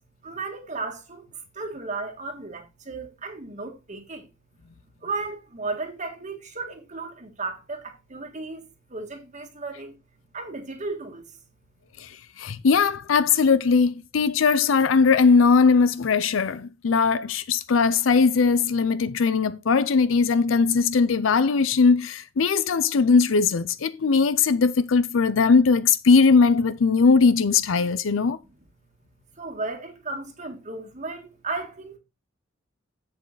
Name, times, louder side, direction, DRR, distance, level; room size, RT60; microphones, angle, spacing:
voice 1, 0.2-1.3 1.5-4.3 5.0-9.9 10.3-11.3 29.3-32.0, right 3 dB, 40° right, 1.7 m, -34 dB
voice 2, 12.0-28.4, left 5 dB, 85° left, 0.5 m, -20 dB
7.7 x 7.3 x 3.9 m
head